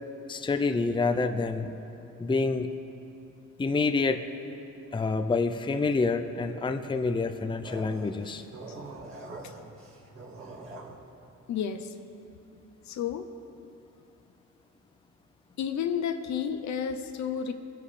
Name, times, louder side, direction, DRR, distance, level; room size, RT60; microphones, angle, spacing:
voice 1, 0.3-1.7 2.2-2.7 3.6-4.2 4.9-8.4, left 3 dB, 15° left, 8 dB, 0.6 m, -27 dB
sound 1, 7.6-11.0, right 2 dB, 45° right, 2.1 m, -43 dB
voice 2, 11.5-11.9 12.9-13.3 15.6-17.5, left 8 dB, 70° left, 8 dB, 0.8 m, -31 dB
21.0 x 10.5 x 3.3 m, 2.8 s
cardioid pair, 90°, 30 cm